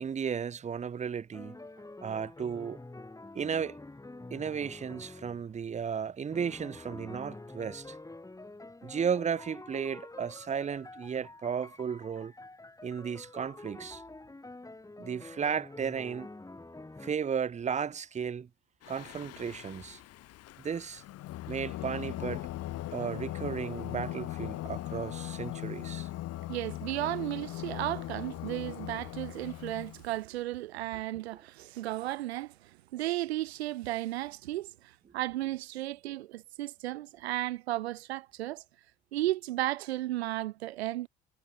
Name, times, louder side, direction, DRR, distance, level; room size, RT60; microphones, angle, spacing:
voice 1, 0.0-1.6 2.0-2.8 3.3-3.8 4.3-8.0 8.8-12.3 12.8-14.0 15.0-16.3 17.0-18.5 18.9-20.0 20.6-21.0 21.5-22.5 22.9-26.1, right 7 dB, 20° right, 0.8 m, -34 dB
sound 1, 1.3-5.6 6.3-17.1, left 2 dB, 10° left, 2.9 m, -47 dB
Singing, 18.8-30.2, left 15 dB, 50° left, 1.7 m, -39 dB
voice 2, 26.5-38.6 39.1-41.1, right 16 dB, 75° right, 0.7 m, -34 dB
figure-of-eight pair, 60°, 32 cm